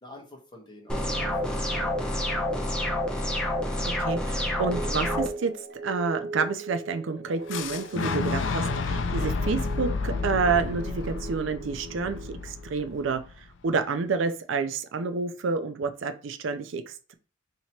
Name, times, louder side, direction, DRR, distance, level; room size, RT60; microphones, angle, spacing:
voice 1, 0.0-1.8 2.4-2.7, left 1 dB, 25° left, 0 dB, 1.1 m, -49 dB
sound 1, 0.9-5.3, left 1 dB, 5° left, 0.6 m, -28 dB
voice 2, 4.0-5.5 5.8-13.2 13.6-17.1, right 4 dB, 75° right, 9 dB, 0.4 m, -29 dB
sound 2, 4.7-13.0, right 3 dB, 55° right, 1.0 m, -40 dB
Boom, 7.5-13.4, left 4 dB, 70° left, 0.5 m, -30 dB
2.9 x 2.9 x 4.3 m, 0.36 s
head